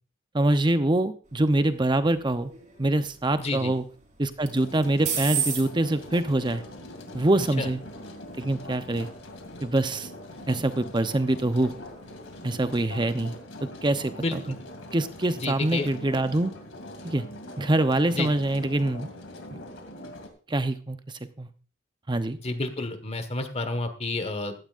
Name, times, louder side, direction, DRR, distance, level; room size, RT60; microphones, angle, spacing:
voice 1, 0.3-2.5 2.8-3.9 4.2-6.6 7.1-7.8 8.4-9.1 9.6-10.1 10.5-11.7 12.4-13.4 13.8-14.6 14.9-16.5 17.0-17.2 17.6-19.1 19.5-19.6 20.5-21.0 21.4-21.5 22.1-22.4, right 1 dB, 25° right, 10 dB, 0.8 m, -24 dB
sound 1, 1.2-13.1, right 7 dB, 40° right, 3.8 m, -39 dB
voice 2, 3.4-3.7 7.6-7.7 14.2-14.5 15.4-15.9 18.1-18.3 22.4-24.5, left 2 dB, 30° left, 8 dB, 1.5 m, -30 dB
sound 2, 4.5-20.3, left 1 dB, 70° left, 2.5 m, -42 dB
16.0 x 13.0 x 2.5 m, 0.38 s
head